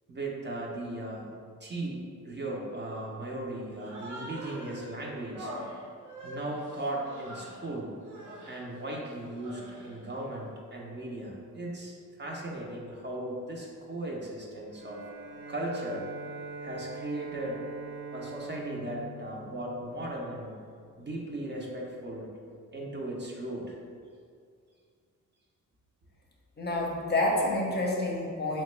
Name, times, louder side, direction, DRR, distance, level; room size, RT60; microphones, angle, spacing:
voice 1, 0.1-1.3 1.6-5.5 6.2-8.0 8.5-15.1 15.5-16.1 16.6-17.6 18.1-20.6 21.0-22.3 22.7-23.8, right 1 dB, 35° right, -2 dB, 0.5 m, -37 dB
Human voice, 3.8-4.9 5.3-7.7 8.0-8.7 9.2-10.0, right 1 dB, 65° right, 0.7 m, -44 dB
Bowed string instrument, 14.7-20.2, right 3 dB, 90° right, 1.0 m, -42 dB
voice 2, 26.6-28.6, left 1 dB, 35° left, -1 dB, 0.5 m, -28 dB
3.5 x 2.2 x 3.1 m, 2.2 s
cardioid pair, 95°, 32 cm